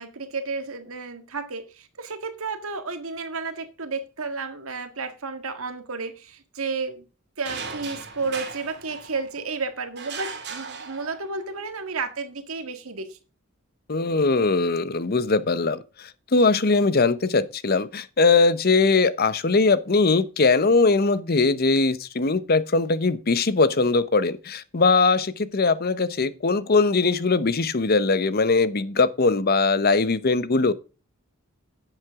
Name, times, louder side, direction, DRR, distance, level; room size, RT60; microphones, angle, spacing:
voice 1, 0.0-7.0 7.4-13.1, right 4 dB, 80° right, 1.7 m, -32 dB
sound 1, 7.4-9.4 10.0-11.5, right 5 dB, 55° right, 2.8 m, -37 dB
voice 2, 13.9-30.7, left 3 dB, 45° left, 0.8 m, -21 dB
10.5 x 8.0 x 3.6 m
head